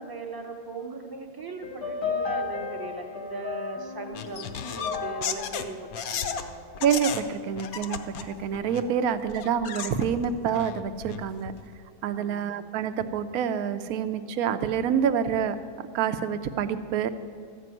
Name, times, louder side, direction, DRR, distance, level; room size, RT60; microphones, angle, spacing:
voice 1, 0.0-6.6 8.8-9.0 12.1-12.5, right 3 dB, 20° right, 2 dB, 0.7 m, -39 dB
sound 1, 1.6-6.9, left 5 dB, 85° left, 2.0 m, -35 dB
sound 2, 4.1-6.4 6.7-7.2 7.6-8.9 9.3-11.6, left 7 dB, 70° left, 1.1 m, -34 dB
voice 2, 6.8-11.5 12.0-15.6 15.9-17.1, right 8 dB, 70° right, 11 dB, 1.0 m, -27 dB
13.0 x 6.0 x 9.1 m, 2.1 s
omnidirectional pair, 1.7 m